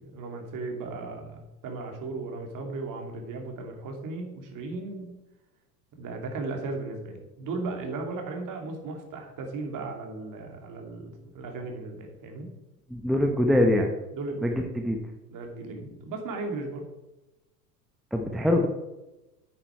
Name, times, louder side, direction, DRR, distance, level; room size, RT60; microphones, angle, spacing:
voice 1, 0.0-5.1 6.0-12.5 14.1-14.6 15.3-16.8, right 3 dB, 40° right, 3 dB, 2.9 m, -36 dB
voice 2, 12.9-13.9 14.4-15.0 18.1-18.7, left 1 dB, ahead, 3 dB, 1.0 m, -23 dB
9.2 x 9.0 x 4.6 m, 0.99 s
hypercardioid pair, 105°, 50 cm